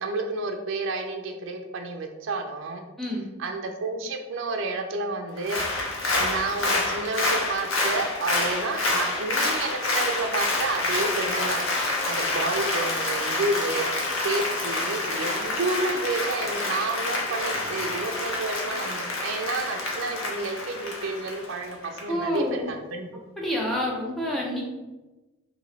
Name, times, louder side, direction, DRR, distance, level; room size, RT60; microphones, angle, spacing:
voice 1, 0.0-2.8 3.4-5.6 6.2-11.6 12.0-23.1, right 3 dB, 70° right, 3 dB, 0.5 m, -30 dB
voice 2, 3.0-3.3 22.1-22.7 23.4-24.6, left 1 dB, ahead, -4 dB, 0.6 m, -28 dB
Applause, 5.4-22.0 22.3-22.4, left 2 dB, 80° left, 0.9 m, -28 dB
3.0 x 3.0 x 3.9 m, 1.1 s
head